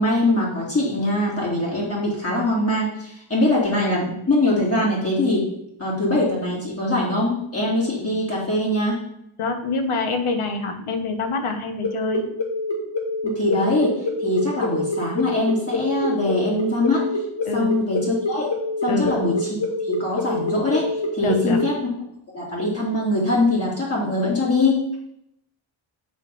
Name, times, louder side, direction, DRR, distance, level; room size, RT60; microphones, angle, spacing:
voice 1, 0.0-5.5 5.8-9.0 13.2-13.9 14.2-17.0 17.5-18.5 18.8-19.6 19.8-21.7 22.3-24.8, left 1 dB, 30° left, -6 dB, 2.5 m, -22 dB
voice 2, 9.4-12.2 17.5-17.8 18.9-19.1 21.2-21.6, left 3 dB, 80° left, 6 dB, 1.2 m, -25 dB
sound 1, 11.8-21.6, left 3 dB, 60° left, 2.3 m, -26 dB
8.3 x 4.2 x 5.4 m, 0.76 s
wide cardioid pair, 160°, 49 cm